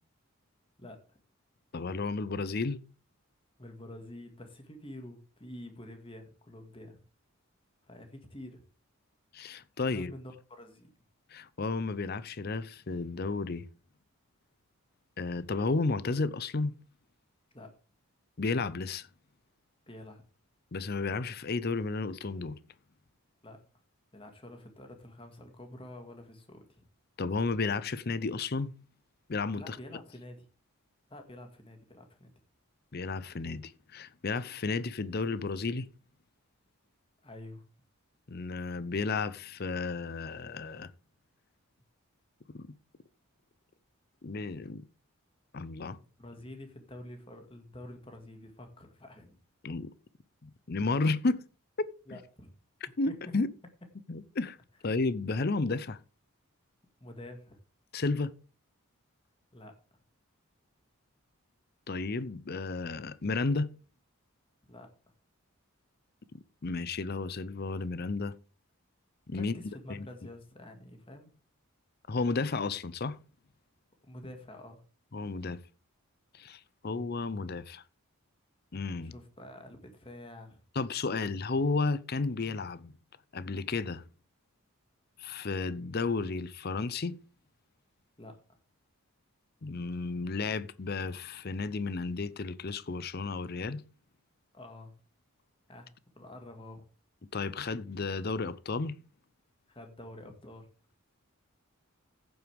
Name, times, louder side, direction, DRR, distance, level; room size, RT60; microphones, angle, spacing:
voice 1, 0.8-1.2 3.6-7.0 7.9-8.6 9.9-10.9 17.5-17.7 19.9-20.2 23.4-23.6 24.1-26.8 29.5-30.5 31.1-32.3 37.2-37.6 46.0-49.4 52.1-52.5 53.1-53.2 57.0-57.6 59.5-59.8 64.7-64.9 69.3-71.3 74.1-74.8 79.0-80.6 88.2-88.4 94.5-94.9 95.7-96.8 99.7-100.7, left 1 dB, 25° left, 1.8 m, -48 dB
voice 2, 1.7-2.8 9.3-10.1 11.3-13.6 15.2-16.7 18.4-19.1 20.7-22.6 27.2-28.7 29.3-29.8 32.9-35.9 38.3-40.9 42.5-42.7 44.2-44.8 45.5-46.0 49.6-49.9 50.4-51.4 53.0-53.5 54.1-54.6 54.8-56.0 57.9-58.3 61.9-63.7 66.6-68.3 69.3-69.5 69.9-70.0 72.1-73.2 75.1-75.6 76.3-77.8 78.7-79.1 80.8-82.9 83.3-84.0 85.2-87.2 89.6-93.8 97.3-99.0, left 3 dB, 45° left, 0.6 m, -32 dB
14.5 x 8.0 x 3.4 m
head